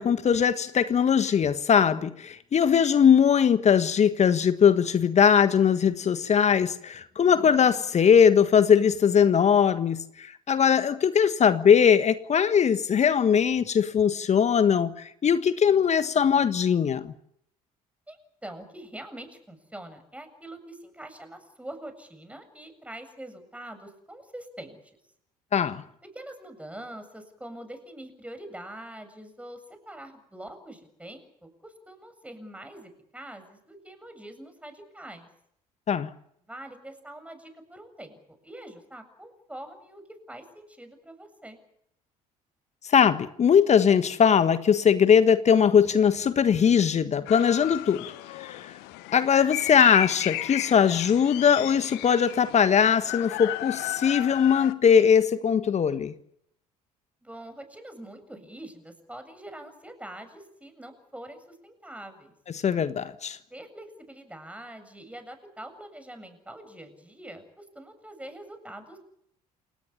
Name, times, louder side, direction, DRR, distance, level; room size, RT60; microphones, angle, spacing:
voice 1, 0.0-17.1 25.5-25.8 35.9-36.1 42.9-48.0 48.5-48.6 49.1-56.1 62.6-63.4, left 7 dB, 35° left, 1.5 m, -21 dB
voice 2, 18.4-24.8 26.1-35.3 36.4-40.0 40.3-41.6 57.2-62.3 63.5-69.0, right 1 dB, 5° right, 7.4 m, -44 dB
sound 1, 47.2-54.7, left 19 dB, 60° left, 1.4 m, -35 dB
28.5 x 18.0 x 8.8 m
figure-of-eight pair, 55°, 19 cm